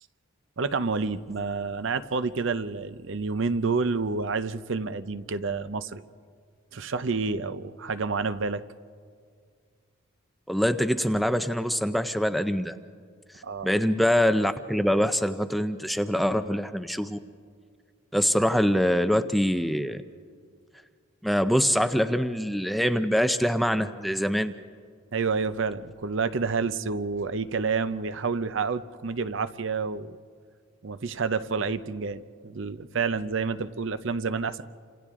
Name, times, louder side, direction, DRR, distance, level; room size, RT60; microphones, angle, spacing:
voice 1, 0.6-6.0 6.7-8.6 13.4-13.7 25.1-30.2 30.8-34.6, right 4 dB, 60° right, 13 dB, 0.6 m, -29 dB
voice 2, 10.5-12.7 13.6-17.2 18.1-20.0 21.2-24.5, equal, ahead, 9 dB, 0.4 m, -24 dB
29.5 x 27.0 x 3.7 m, 2.1 s
head